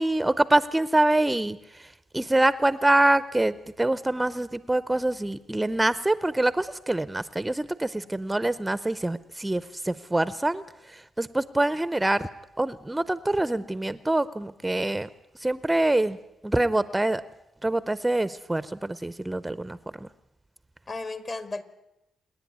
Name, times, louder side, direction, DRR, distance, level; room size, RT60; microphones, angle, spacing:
voice 1, 0.0-1.9 2.1-10.6 10.9-12.3 12.6-15.1 15.4-16.2 16.4-17.2 17.6-20.1, right 2 dB, 15° right, 15 dB, 0.6 m, -25 dB
voice 2, 20.9-21.6, left 3 dB, 40° left, 11 dB, 1.9 m, -36 dB
27.0 x 10.5 x 9.4 m, 0.92 s
cardioid pair, 75°, 0 cm